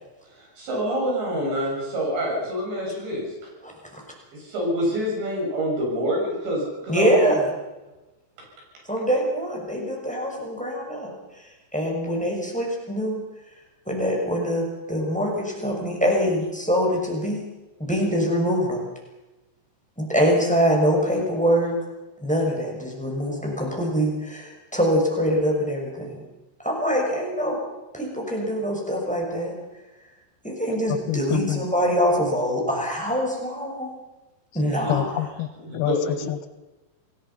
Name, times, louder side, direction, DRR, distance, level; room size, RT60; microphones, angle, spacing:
voice 1, 0.4-3.3 4.3-7.3 34.6-35.0 35.7-36.1, equal, 65° right, -2 dB, 9.4 m, -26 dB
voice 2, 3.6-4.0 6.9-7.4 8.9-13.2 13.9-17.5 17.8-18.9 20.0-21.7 22.2-26.2 26.6-27.6 27.9-29.5 30.4-33.9 34.5-35.1, equal, ahead, 0 dB, 5.8 m, -24 dB
voice 3, 30.9-31.6 34.9-36.5, left 13 dB, 75° left, 11 dB, 2.4 m, -28 dB
28.0 x 20.5 x 5.8 m, 1.1 s
omnidirectional pair, 5.4 m